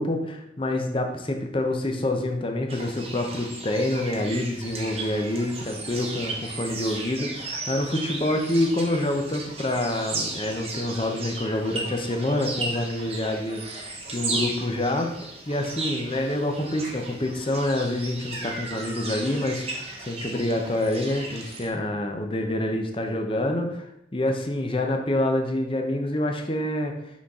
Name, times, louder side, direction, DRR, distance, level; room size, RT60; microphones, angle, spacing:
voice 1, 0.0-15.1 15.5-26.9, left 1 dB, 30° left, 4 dB, 0.7 m, -27 dB
sound 1, 2.7-21.7, right 3 dB, 35° right, 1.1 m, -35 dB
6.2 x 5.7 x 3.7 m, 0.81 s
head